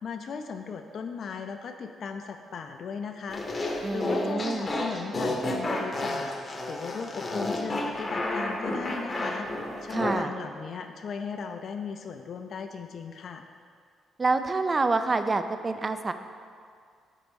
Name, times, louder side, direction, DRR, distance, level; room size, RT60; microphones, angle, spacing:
voice 1, 0.0-3.4 3.9-6.3 6.7-9.5 9.8-13.5, left 5 dB, 55° left, 6 dB, 0.3 m, -37 dB
sound 1, 3.3-10.1, left 1 dB, 30° left, 0.7 m, -31 dB
voice 2, 3.8-4.7 9.9-10.3 14.2-16.1, right 3 dB, 30° right, 9 dB, 0.3 m, -27 dB
4.5 x 4.1 x 5.1 m, 2.2 s
cardioid pair, 90°, 0 cm